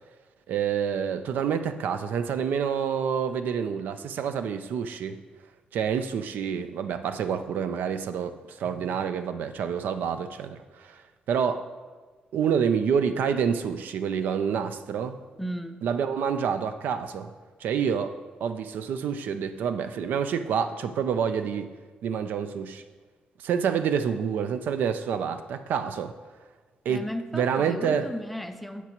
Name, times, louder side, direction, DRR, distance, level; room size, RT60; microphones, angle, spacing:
voice 1, 0.5-5.2 5.7-11.0 11.3-11.6 12.3-15.2 15.8-17.3 17.6-21.7 22.0-22.8 23.4-26.1 26.8-27.1 27.3-28.1, right 7 dB, 85° right, 9 dB, 0.5 m, -28 dB
voice 2, 15.4-15.8 26.9-28.8, equal, ahead, 8 dB, 0.4 m, -35 dB
16.5 x 6.0 x 3.0 m, 1.4 s
wide cardioid pair, 165°, 3 cm